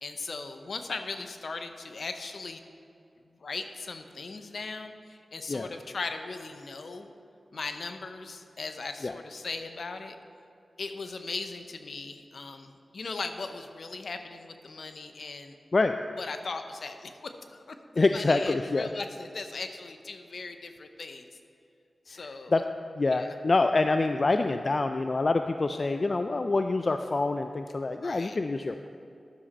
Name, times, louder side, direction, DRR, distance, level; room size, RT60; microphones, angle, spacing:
voice 1, 0.0-2.6 3.4-7.1 7.5-10.2 10.8-15.5 16.2-21.3 22.1-22.6 23.1-23.3 28.0-28.4, left 3 dB, 70° left, 7 dB, 0.7 m, -38 dB
voice 2, 18.0-18.9 22.5-22.6 23.0-28.9, left 3 dB, 50° left, 7 dB, 0.3 m, -26 dB
11.5 x 7.3 x 4.2 m, 2.7 s
cardioid pair, 45°, 0 cm